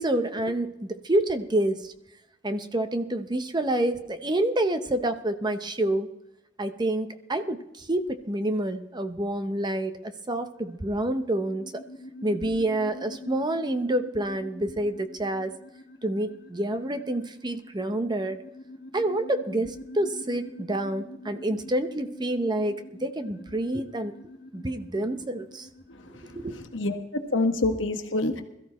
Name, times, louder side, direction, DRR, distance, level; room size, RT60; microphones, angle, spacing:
voice 1, 0.0-1.9 2.4-6.1 6.6-11.8 12.2-15.6 16.0-18.4 18.9-24.1 24.5-25.7 26.3-26.6, right 1 dB, 25° right, 9 dB, 0.8 m, -28 dB
sound 1, 10.6-26.9, left 1 dB, 55° left, 1.2 m, -45 dB
voice 2, 25.9-28.4, left 2 dB, 70° left, 5 dB, 1.5 m, -28 dB
21.5 x 14.0 x 3.1 m, 0.86 s
head